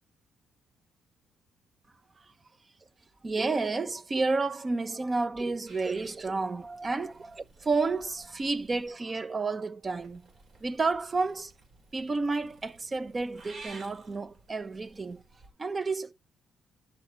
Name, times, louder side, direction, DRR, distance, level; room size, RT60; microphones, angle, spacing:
voice 1, 3.2-10.2 10.6-11.5 11.9-15.2 15.6-16.1, right 3 dB, 30° right, 1.0 m, -31 dB
Purr / Meow, 5.7-8.9 9.8-15.5, right 3 dB, 55° right, 4.0 m, -54 dB
11.0 x 6.8 x 4.6 m
cardioid pair, 90°, 0 cm